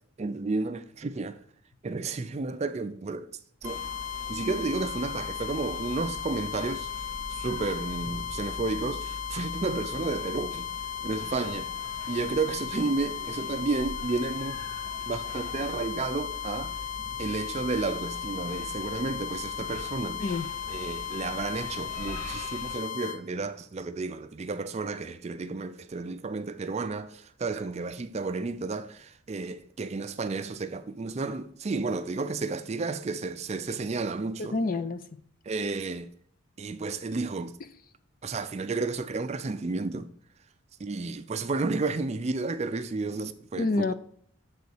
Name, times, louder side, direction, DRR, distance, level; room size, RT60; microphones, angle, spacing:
voice 1, 0.2-1.4 1.8-3.3 3.6-3.9 4.3-6.9 7.3-10.7 11.0-11.7 12.1-14.6 15.1-16.7 17.2-20.2 20.7-34.6 35.5-36.1 36.6-37.5 38.2-40.1 40.8-43.9, right 3 dB, 30° right, 0.4 m, -32 dB
sound 1, 3.6-23.2, left 9 dB, 85° left, 2.7 m, -36 dB
sound 2, 3.6-22.8, equal, 10° left, 1.8 m, -44 dB
voice 2, 20.2-20.5 34.4-35.1 43.6-43.9, left 3 dB, 40° left, 0.4 m, -28 dB
6.9 x 4.0 x 6.5 m
head